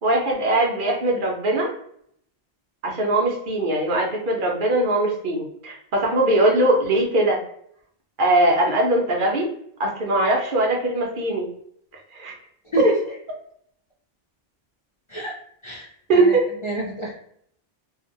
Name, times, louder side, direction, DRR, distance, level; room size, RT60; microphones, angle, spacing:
voice 1, 0.0-1.7 2.8-7.4 8.2-9.5 9.8-11.5 12.1-12.3 12.8-12.9 16.1-16.4, right 2 dB, 60° right, 0 dB, 0.7 m, -20 dB
voice 2, 16.6-17.1, right 1 dB, 40° left, -4 dB, 0.4 m, -28 dB
2.8 x 2.4 x 2.5 m, 0.67 s
omnidirectional pair, 1.1 m